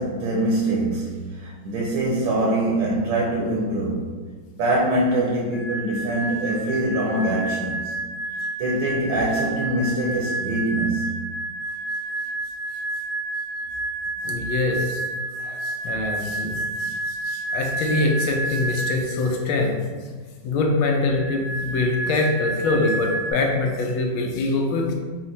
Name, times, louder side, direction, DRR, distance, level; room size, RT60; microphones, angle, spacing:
voice 1, 0.0-4.2 4.6-7.9 8.6-11.1, right 1 dB, 75° right, -3 dB, 1.5 m, -24 dB
sound 1, 5.5-19.2 21.1-23.3, right 2 dB, 50° left, 1.7 m, -30 dB
voice 2, 14.2-15.1 15.4-19.7 20.4-24.9, left 2 dB, 85° left, 1 dB, 1.5 m, -24 dB
4.7 x 2.1 x 4.1 m, 1.4 s
omnidirectional pair, 2.2 m